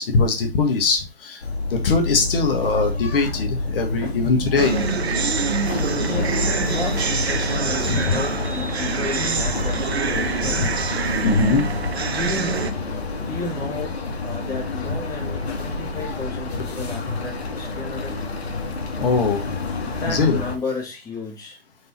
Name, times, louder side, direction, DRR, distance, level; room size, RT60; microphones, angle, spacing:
voice 1, 0.0-1.4 1.7-4.8 7.9-8.2 10.5-10.7 11.2-11.6 19.0-19.5 20.1-20.4, left 4 dB, 60° left, 3 dB, 1.7 m, -21 dB
sound 1, 1.4-20.6, left 3 dB, 80° left, 1.5 m, -28 dB
voice 2, 3.7-4.2 6.0-10.7 12.1-12.7 12.9-18.2 19.8-21.6, left 3 dB, 10° left, -1 dB, 2.2 m, -33 dB
sound 2, 4.6-12.7, right 5 dB, 90° right, 1.1 m, -26 dB
5.5 x 5.3 x 4.4 m, 0.27 s
hypercardioid pair, 140°, 31 cm